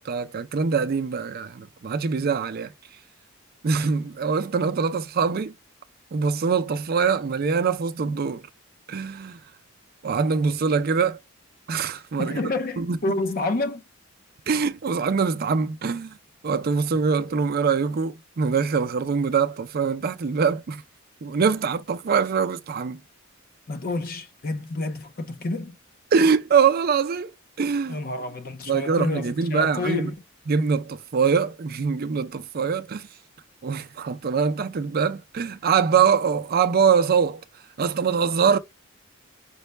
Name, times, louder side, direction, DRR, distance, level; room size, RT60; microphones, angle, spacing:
voice 1, 0.0-2.7 3.6-5.5 6.1-8.4 8.9-9.4 10.0-11.2 11.7-12.4 12.8-13.2 14.5-16.1 16.4-20.8 21.2-23.0 26.1-27.3 27.6-28.0 28.7-30.1 30.5-33.1 33.6-37.4 37.8-38.6, right 6 dB, 45° right, 0.4 m, -23 dB
voice 2, 12.2-13.8 23.7-25.8 27.9-30.2, left 2 dB, 45° left, 0.6 m, -29 dB
5.3 x 2.2 x 3.2 m
head